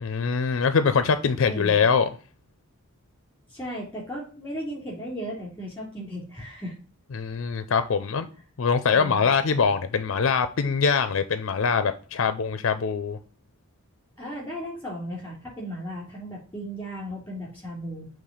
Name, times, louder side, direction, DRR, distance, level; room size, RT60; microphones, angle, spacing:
voice 1, 0.0-2.1 7.1-8.3 8.6-13.2, left 5 dB, 60° left, 0.4 m, -23 dB
voice 2, 3.5-6.7 8.9-9.2 14.2-18.1, equal, 10° left, 3.2 m, -35 dB
6.6 x 3.2 x 5.4 m
head